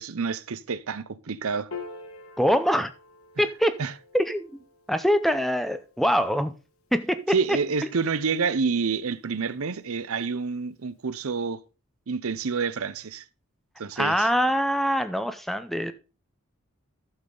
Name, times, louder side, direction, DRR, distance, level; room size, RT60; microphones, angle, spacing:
voice 1, 0.0-1.7 3.8-3.9 7.3-11.6 12.1-13.2 13.8-14.3, right 5 dB, 75° right, 0.7 m, -28 dB
Piano, 1.7-8.3, left 4 dB, 75° left, 1.5 m, -47 dB
voice 2, 2.4-2.9 3.4-3.7 4.1-4.6 4.9-6.5 6.9-7.2 7.5-7.6 14.0-15.9, equal, ahead, 0.6 m, -24 dB
11.5 x 7.2 x 3.9 m
head